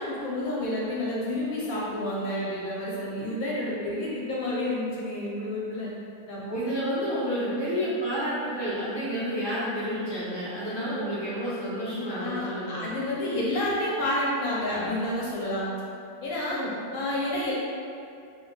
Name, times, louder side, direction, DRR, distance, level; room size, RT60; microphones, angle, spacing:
voice 1, 0.0-5.9 6.3-6.6 12.1-15.7 16.2-16.6 16.9-17.5, left 1 dB, 65° left, -6 dB, 1.0 m, -29 dB
voice 2, 6.5-12.9 16.5-16.7, equal, 30° left, -12 dB, 0.5 m, -30 dB
2.7 x 2.2 x 3.8 m, 2.5 s
omnidirectional pair, 1.8 m